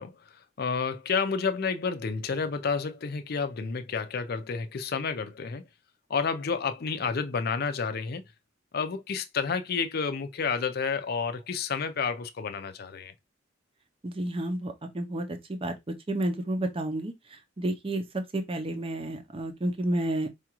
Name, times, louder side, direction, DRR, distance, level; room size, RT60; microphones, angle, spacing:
voice 1, 0.0-5.6 6.1-8.2 8.7-13.1, left 5 dB, 55° left, 0.5 m, -30 dB
voice 2, 14.0-20.3, right 1 dB, 30° right, 0.5 m, -31 dB
4.8 x 2.3 x 2.9 m
head